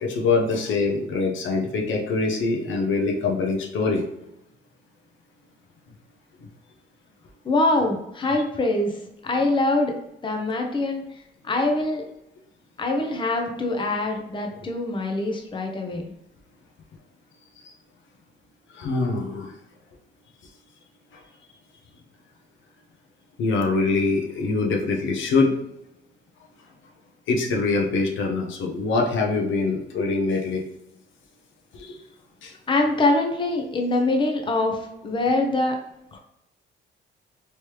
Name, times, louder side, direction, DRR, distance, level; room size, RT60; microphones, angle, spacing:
voice 1, 0.0-4.0 18.7-19.5 23.4-25.6 27.3-30.6 31.7-32.0 32.4-32.5, left 3 dB, 75° left, 1 dB, 0.7 m, -24 dB
voice 2, 7.4-10.0 10.2-12.0 12.8-16.0 32.7-35.7 36.1-36.2, left 2 dB, 25° left, 2 dB, 0.7 m, -24 dB
3.2 x 3.1 x 2.9 m, 0.82 s
cardioid pair, 90°, 20 cm